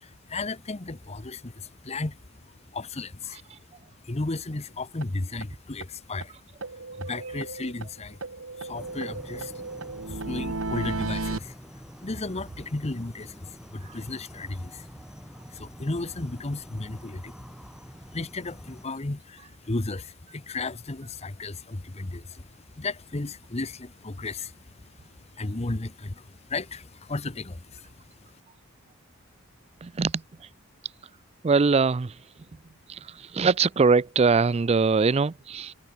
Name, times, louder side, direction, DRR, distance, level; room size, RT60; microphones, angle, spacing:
voice 1, 0.0-2.4 2.7-3.4 4.0-6.4 7.0-9.7 10.0-28.0 28.3-28.4, left 2 dB, 30° left, 0.9 m, -35 dB
sound 1, 5.0-5.1 5.4-5.5 5.8-5.9 6.2-6.3 6.6-7.9 8.2-11.4, right 2 dB, 75° right, 1.9 m, -34 dB
sound 2, 8.7-18.9, equal, 5° right, 1.6 m, -47 dB
voice 2, 29.8-30.5 31.4-32.2 32.9-35.7, right 4 dB, 30° right, 0.4 m, -23 dB
head